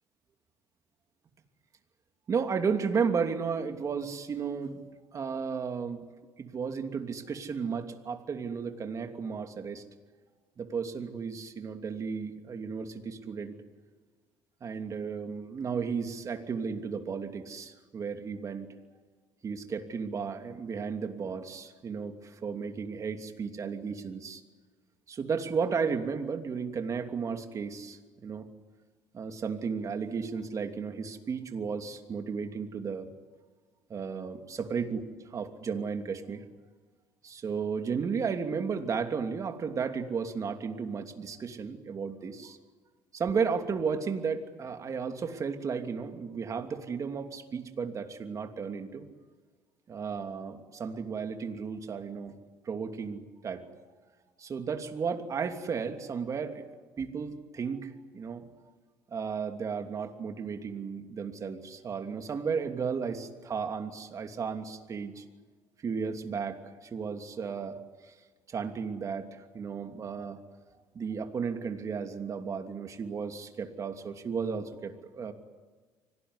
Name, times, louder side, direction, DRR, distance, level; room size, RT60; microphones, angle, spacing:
voice 1, 2.3-4.8 5.1-6.0 6.4-9.8 10.6-13.6 14.6-18.7 19.4-24.4 25.1-28.5 29.1-33.1 33.9-36.4 37.2-42.6 43.1-49.0 49.9-52.3 52.6-53.6 54.4-56.7 57.0-58.4 59.1-65.2 65.8-67.8 68.1-68.2 68.5-70.4 70.9-75.3, right 5 dB, 40° right, 6 dB, 2.9 m, -34 dB
25.5 x 18.5 x 9.8 m, 1.4 s
supercardioid pair, 90°, 8 cm